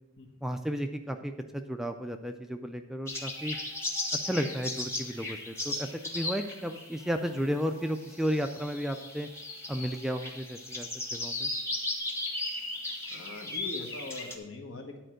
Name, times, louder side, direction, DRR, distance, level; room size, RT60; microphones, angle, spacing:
voice 1, 0.4-3.6 4.2-9.3 9.7-11.5, equal, ahead, 6 dB, 0.3 m, -33 dB
sound 1, 3.1-14.4, left 2 dB, 15° left, 1.2 m, -36 dB
voice 2, 13.1-15.0, left 2 dB, 65° left, 3 dB, 1.3 m, -41 dB
10.0 x 4.5 x 6.3 m, 1.0 s
head